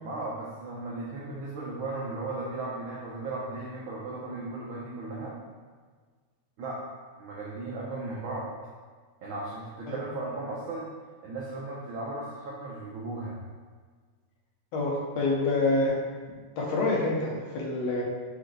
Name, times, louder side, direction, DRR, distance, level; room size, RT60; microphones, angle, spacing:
voice 1, 0.0-5.4 6.6-6.8 7.2-8.5 9.2-10.9 11.2-13.4, right 2 dB, 80° right, -5 dB, 1.1 m, -36 dB
voice 2, 14.7-16.0 16.6-18.0, left 2 dB, 65° left, -3 dB, 2.2 m, -27 dB
6.3 x 5.2 x 3.3 m, 1.5 s
omnidirectional pair, 3.4 m